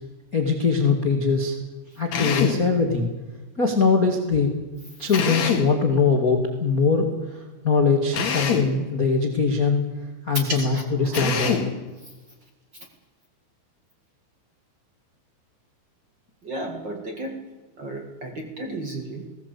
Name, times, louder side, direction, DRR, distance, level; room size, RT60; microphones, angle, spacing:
voice 1, 0.3-1.5 2.0-3.1 3.6-4.5 5.0-7.1 7.6-9.8 10.3-11.5, left 4 dB, 85° left, 3 dB, 0.8 m, -21 dB
Drill, 2.1-2.7 5.1-5.8 8.1-8.8 11.1-11.8, left 6 dB, 50° left, 2.5 m, -24 dB
voice 2, 10.4-11.2 16.4-17.4 17.8-19.3, right 1 dB, 50° right, 3 dB, 1.4 m, -33 dB
19.5 x 17.0 x 8.3 m, 1.2 s
omnidirectional pair, 5.5 m